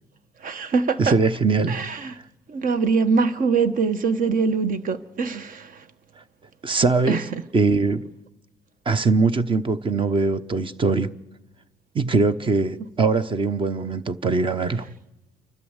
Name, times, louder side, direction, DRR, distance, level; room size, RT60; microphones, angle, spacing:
voice 1, 0.4-1.1 1.7-2.1 2.5-5.8 7.1-7.4, right 5 dB, 55° right, 1.3 m, -23 dB
voice 2, 1.0-1.8 6.6-7.2 7.5-8.1 8.9-11.1 11.9-14.9, right 4 dB, 30° right, 1.0 m, -21 dB
29.0 x 12.5 x 8.2 m
cardioid pair, 110°, 17 cm